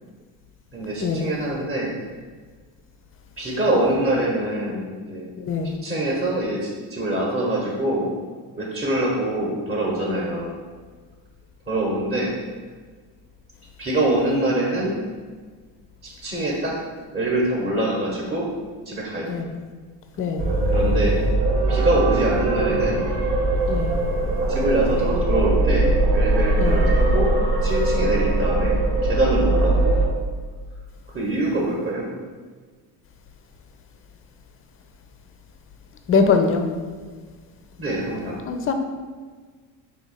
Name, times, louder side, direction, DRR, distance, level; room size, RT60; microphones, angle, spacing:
voice 1, 0.7-1.9 3.4-5.3 5.8-8.1 8.6-10.6 11.7-12.3 13.8-15.0 16.0-16.7 17.1-18.5 18.8-19.3 20.7-21.2 21.7-23.0 24.5-27.3 27.6-29.9 31.1-32.1 37.8-38.4, right 1 dB, 25° right, -3 dB, 1.0 m, -24 dB
voice 2, 5.4-5.8 19.3-19.5 20.2-20.4 23.7-24.0 26.6-26.9 36.1-36.6 38.5-38.7, left 5 dB, 30° left, 6 dB, 0.5 m, -22 dB
sound 1, 20.4-30.1, right 2 dB, 75° right, 1.0 m, -20 dB
3.8 x 2.8 x 4.1 m, 1.5 s
supercardioid pair, 80°, 46 cm